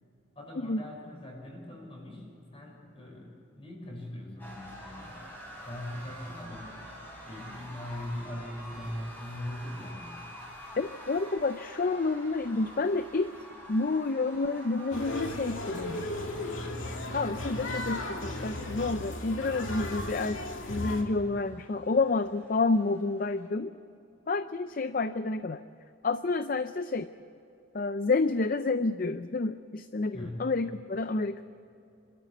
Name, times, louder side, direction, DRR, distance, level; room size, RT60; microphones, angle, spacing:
voice 1, 0.3-5.2 5.7-6.8 7.2-10.2 30.1-30.5, left 1 dB, 30° left, 0 dB, 5.9 m, -41 dB
sound 1, 4.4-23.5, equal, 10° left, 4.9 m, -48 dB
voice 2, 10.8-13.3 13.7-16.1 17.1-20.4 20.7-23.7 24.3-25.6 26.0-27.1 27.7-31.4, left 3 dB, 45° left, 11 dB, 0.5 m, -29 dB
sound 2, 14.9-21.0, left 1 dB, 75° left, 2.5 m, -36 dB
26.5 x 13.0 x 8.4 m, 2.7 s
head